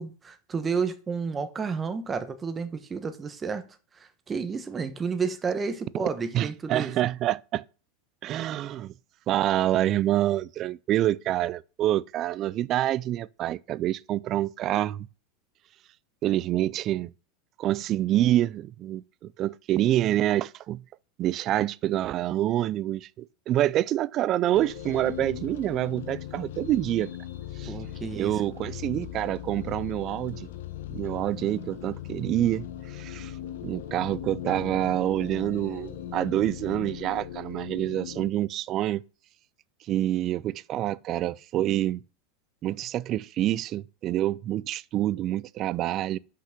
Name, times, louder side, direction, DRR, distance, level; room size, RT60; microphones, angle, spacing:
voice 1, 0.0-3.6 4.0-6.9 27.7-28.4, right 5 dB, 20° right, 1.1 m, -31 dB
voice 2, 6.3-7.6 8.2-8.9 9.3-15.1 16.2-17.1 17.6-20.8 21.2-27.1 27.6-27.7 28.1-30.5 30.9-33.3 33.6-39.0 39.9-42.0 42.6-46.2, right 13 dB, 35° right, 0.3 m, -27 dB
sound 1, 24.5-38.3, left 11 dB, 85° left, 1.2 m, -39 dB
6.0 x 5.9 x 5.8 m
supercardioid pair, 140°, 0 cm